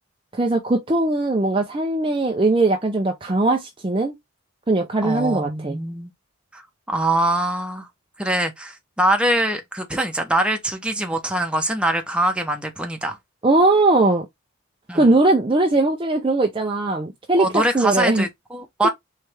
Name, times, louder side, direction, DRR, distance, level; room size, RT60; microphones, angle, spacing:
voice 1, 0.3-4.2 4.7-5.8 13.4-14.3 14.9-18.3 18.8-18.9, right 2 dB, 25° right, 0.6 m, -20 dB
voice 2, 5.0-6.1 6.5-6.6 6.9-7.9 8.2-13.2 14.9-15.1 17.4-18.9, right 1 dB, 5° right, 0.9 m, -23 dB
4.4 x 3.3 x 3.4 m
head